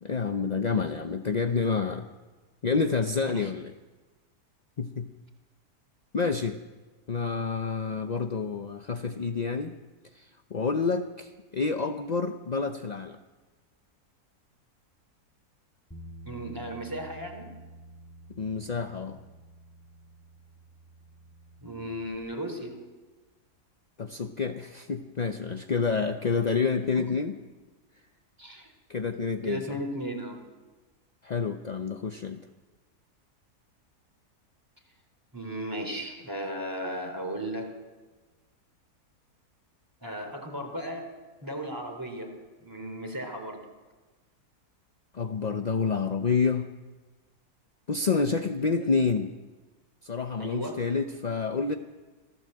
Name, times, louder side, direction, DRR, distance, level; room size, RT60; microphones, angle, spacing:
voice 1, 0.0-2.1 2.6-3.7 4.8-5.1 6.1-6.6 7.1-9.8 10.1-13.2 18.4-19.2 24.0-27.4 28.9-29.8 31.2-32.4 45.1-46.7 47.9-49.3 50.0-51.8, left 5 dB, 40° left, 7 dB, 0.6 m, -28 dB
Bass guitar, 15.9-22.2, right 1 dB, 10° left, 2.7 m, -49 dB
voice 2, 16.2-17.5 21.6-22.8 26.9-27.0 28.4-28.7 29.4-30.4 35.3-37.7 40.0-41.1 41.4-42.3 42.6-43.6 50.4-50.8, equal, 10° right, 3 dB, 3.4 m, -35 dB
26.5 x 15.5 x 7.8 m, 1.3 s
omnidirectional pair, 1.7 m